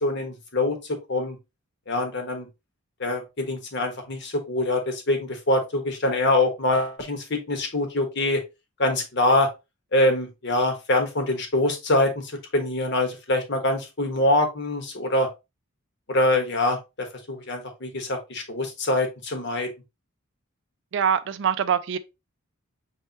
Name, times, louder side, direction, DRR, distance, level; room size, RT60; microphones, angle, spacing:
voice 1, 0.0-1.4 1.9-2.5 3.0-8.4 8.8-9.5 9.9-15.3 16.1-19.7, left 2 dB, 55° left, 1.2 m, -24 dB
voice 2, 20.9-22.0, right 7 dB, 55° right, 0.4 m, -23 dB
5.5 x 3.2 x 2.9 m
head